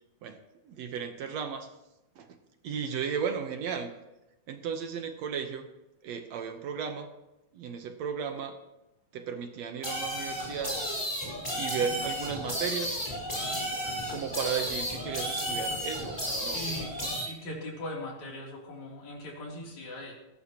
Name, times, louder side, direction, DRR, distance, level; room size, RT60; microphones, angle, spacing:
voice 1, 0.7-1.7 2.2-2.3 2.6-3.9 4.5-5.7 6.0-7.1 7.5-8.5 9.1-10.8 11.6-13.0 14.1-16.6, right 7 dB, 70° right, 6 dB, 2.1 m, -34 dB
sound 1, 9.8-17.2, equal, 10° left, 4.8 m, -33 dB
voice 2, 16.5-16.9 17.2-20.1, left 1 dB, 75° left, -2 dB, 4.6 m, -40 dB
17.5 x 15.5 x 3.0 m, 0.96 s
omnidirectional pair, 3.3 m